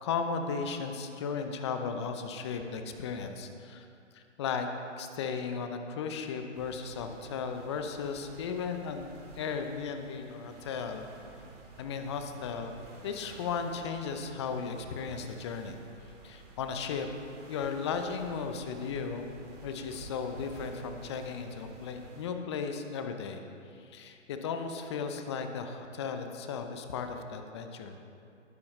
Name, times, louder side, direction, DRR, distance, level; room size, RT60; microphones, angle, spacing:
voice 1, 0.0-3.9 4.1-4.7 5.0-11.0 11.8-12.7 13.0-15.8 16.2-17.1 17.5-19.3 19.6-23.4 23.8-27.9, left 5 dB, 20° left, 6 dB, 0.7 m, -35 dB
sound 1, 6.5-22.3, right 3 dB, 30° right, 2.1 m, -52 dB
19.5 x 9.9 x 3.3 m, 2.6 s
figure-of-eight pair, 140°, 39 cm